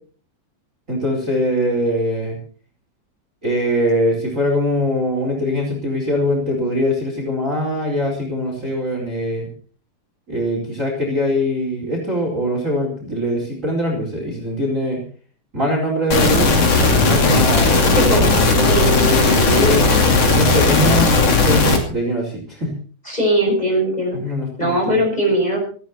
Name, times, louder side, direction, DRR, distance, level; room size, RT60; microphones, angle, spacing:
voice 1, 0.9-2.4 3.4-9.5 10.3-15.0 15.5-16.5 16.9-21.1 21.4-22.7 24.1-25.0, equal, 20° right, 0 dB, 4.7 m, -22 dB
sound 1, 16.1-21.8, left 3 dB, 50° left, 3.7 m, -15 dB
voice 2, 17.9-18.3 18.6-18.9 23.0-24.2 24.6-25.6, equal, 10° left, -1 dB, 5.8 m, -19 dB
18.5 x 14.5 x 4.3 m, 0.42 s
omnidirectional pair, 3.9 m